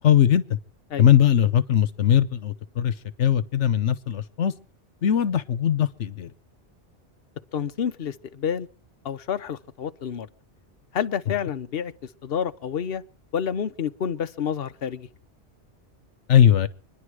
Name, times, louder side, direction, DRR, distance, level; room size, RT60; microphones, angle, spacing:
voice 1, 0.0-0.4 1.0-2.9 3.2-4.5 5.0-6.3 16.3-16.7, left 10 dB, 80° left, 1.2 m, -19 dB
voice 2, 7.5-8.7 9.0-10.3 10.9-11.9 12.2-13.0 13.3-15.1, left 8 dB, 55° left, 1.1 m, -29 dB
26.0 x 10.5 x 4.8 m
omnidirectional pair, 1.2 m